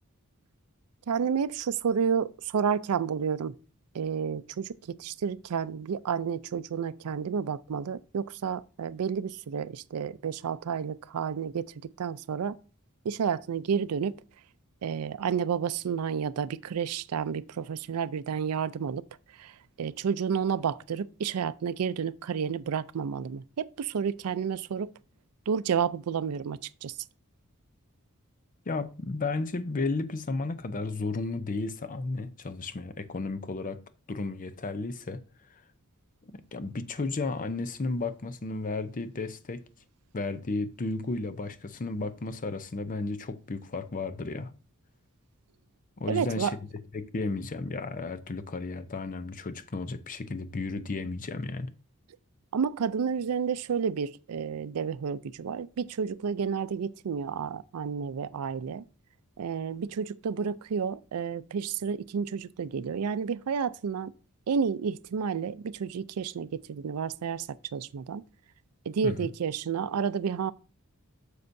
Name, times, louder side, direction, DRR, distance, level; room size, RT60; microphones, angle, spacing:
voice 1, 1.1-3.5 3.9-4.7 5.0-11.6 12.0-12.6 13.1-14.2 14.8-19.0 19.4-19.5 19.8-24.9 25.5-26.9 46.1-46.5 52.5-58.8 59.4-64.1 64.5-67.5 67.7-68.2 68.9-70.5, right 6 dB, 90° right, 0.4 m, -30 dB
voice 2, 28.7-33.8 34.1-35.2 36.5-39.6 40.1-44.5 46.0-46.6 46.9-51.7 69.0-69.3, left 3 dB, 40° left, 0.6 m, -33 dB
9.6 x 6.6 x 2.6 m
head